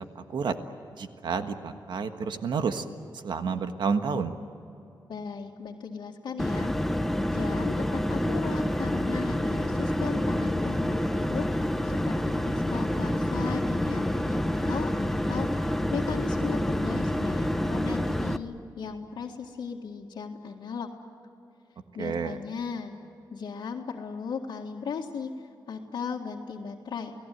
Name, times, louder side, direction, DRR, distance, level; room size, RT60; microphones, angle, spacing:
voice 1, 0.1-0.6 1.0-2.8 3.2-4.3 22.0-22.4, right 5 dB, 75° right, 7 dB, 1.5 m, -30 dB
voice 2, 5.1-6.7 7.3-20.9 21.9-22.9 23.3-25.3 25.7-27.1, left 5 dB, 80° left, -4 dB, 2.0 m, -37 dB
sound 1, 6.4-18.4, left 1 dB, 5° left, 0.9 m, -28 dB
29.5 x 18.0 x 9.4 m, 2.8 s
wide cardioid pair, 130°, 8 cm